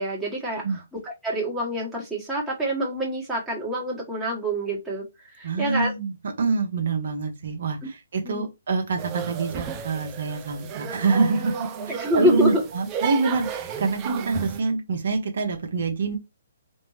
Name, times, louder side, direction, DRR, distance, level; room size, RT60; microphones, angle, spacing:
voice 1, 0.0-0.6 0.9-5.9 7.8-7.9 8.2-8.4 12.0-12.6, equal, 5° right, 1.5 m, -26 dB
voice 2, 5.4-16.2, right 4 dB, 60° right, 1.0 m, -26 dB
sound 1, 9.0-14.6, right 7 dB, 25° right, 0.5 m, -33 dB
4.3 x 2.7 x 3.2 m
hypercardioid pair, 140°, 0 cm